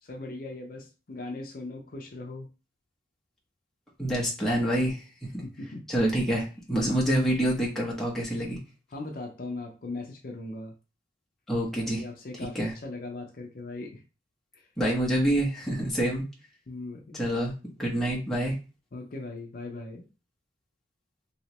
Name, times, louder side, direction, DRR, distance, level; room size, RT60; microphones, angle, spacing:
voice 1, 0.0-2.5 5.4-5.9 8.9-10.7 11.7-14.0 14.5-14.7 16.7-17.2 18.9-20.0, left 2 dB, 50° left, 2 dB, 0.5 m, -39 dB
voice 2, 4.0-5.0 5.3-5.4 5.9-8.6 11.5-12.0 12.5-12.7 14.8-16.2 17.1-17.5 17.8-18.6, right 1 dB, ahead, -5 dB, 0.9 m, -26 dB
3.1 x 2.9 x 2.9 m, 0.32 s
head